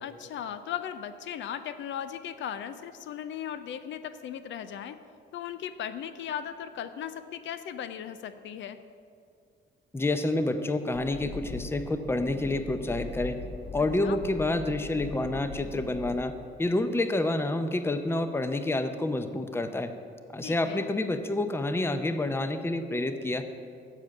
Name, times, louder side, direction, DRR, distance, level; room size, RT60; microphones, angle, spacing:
voice 1, 0.0-5.0 5.3-8.8 14.0-14.2 20.4-20.9, left 9 dB, 70° left, 11 dB, 0.5 m, -37 dB
voice 2, 9.9-13.4 13.7-16.3 16.6-19.9 20.3-23.4, left 2 dB, 10° left, 9 dB, 0.6 m, -28 dB
sound 1, 10.9-16.1, left 3 dB, 30° left, 1.3 m, -40 dB
7.3 x 7.3 x 6.6 m, 2.3 s
cardioid pair, 90°, 20 cm